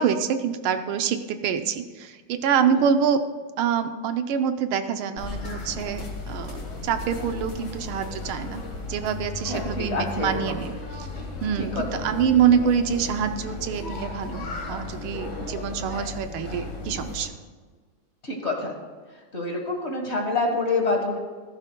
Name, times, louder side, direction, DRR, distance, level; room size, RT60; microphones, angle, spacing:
voice 1, 0.0-3.2 3.6-8.6 8.9-10.7 11.4-17.3, right 7 dB, 80° right, 8 dB, 1.6 m, -25 dB
sound 1, 5.2-17.3, left 3 dB, 55° left, 2.3 m, -35 dB
voice 2, 9.4-10.6 11.6-12.0 18.2-18.7 19.3-21.2, left 3 dB, 35° left, 1 dB, 1.6 m, -27 dB
15.5 x 14.5 x 2.3 m, 1.4 s
omnidirectional pair, 2.3 m